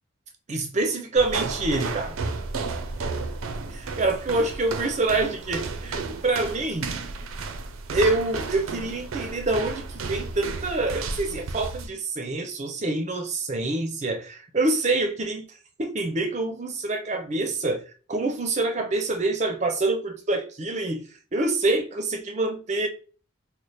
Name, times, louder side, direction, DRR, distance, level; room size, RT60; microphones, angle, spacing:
voice 1, 0.5-2.2 3.7-7.0 7.9-15.5 15.8-17.8 18.1-22.9, right 2 dB, 35° right, 0.5 m, -26 dB
sound 1, 1.1-11.9, right 4 dB, 85° right, 0.5 m, -33 dB
3.1 x 2.0 x 4.1 m
head